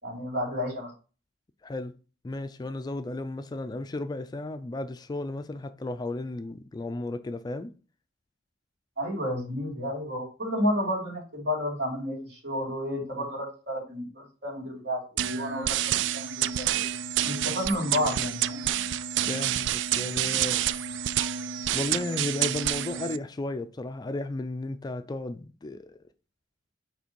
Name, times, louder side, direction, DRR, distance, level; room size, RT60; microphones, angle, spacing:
voice 1, 0.0-0.9 9.0-16.9 17.2-18.7, equal, 65° right, 3.3 m, -31 dB
voice 2, 1.6-2.0 2.2-7.7 13.2-13.3 19.2-21.0 21.7-26.0, left 2 dB, 25° left, 0.3 m, -34 dB
sound 1, 15.2-23.2, right 11 dB, 85° right, 0.3 m, -28 dB
5.0 x 3.8 x 5.2 m
head